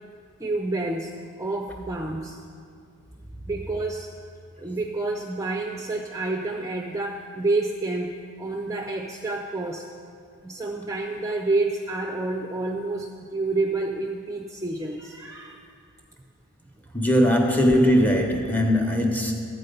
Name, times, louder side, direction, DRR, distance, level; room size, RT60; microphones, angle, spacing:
voice 1, 0.4-2.4 3.5-4.1 4.6-9.9 10.4-15.6 17.2-17.3, right 2 dB, 15° right, 1 dB, 0.4 m, -29 dB
voice 2, 16.9-19.3, equal, 10° left, 2 dB, 0.9 m, -20 dB
12.5 x 8.6 x 5.3 m, 2.3 s
head